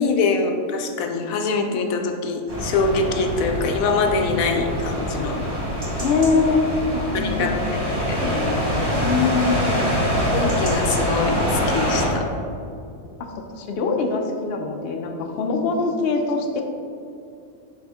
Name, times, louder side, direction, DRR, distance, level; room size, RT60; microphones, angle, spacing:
voice 1, 0.0-5.4 7.1-7.8 8.1-8.6 10.3-12.2, left 4 dB, 80° left, 4 dB, 1.0 m, -24 dB
sound 1, 2.5-12.1, equal, 20° right, 1.3 m, -24 dB
voice 2, 6.0-6.6 6.9-7.6 9.0-9.9 13.5-16.6, left 4 dB, 55° left, 3 dB, 0.7 m, -23 dB
6.2 x 5.0 x 3.5 m, 2.5 s
omnidirectional pair, 1.5 m